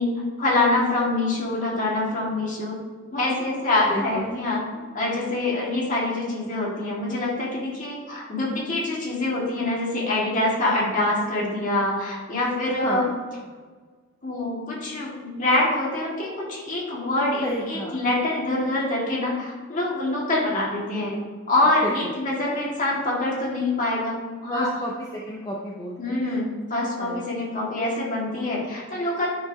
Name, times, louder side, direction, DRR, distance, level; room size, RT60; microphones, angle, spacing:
voice 1, 0.0-2.8 3.1-4.6 4.9-13.1 14.2-21.1 21.5-24.7 26.0-29.3, left 2 dB, 40° left, -4 dB, 1.8 m, -25 dB
voice 2, 3.9-4.3 12.7-13.1 17.4-17.9 21.8-22.1 24.5-26.5 27.0-27.3, equal, 20° left, -3 dB, 0.6 m, -31 dB
9.2 x 4.8 x 2.7 m, 1.5 s
head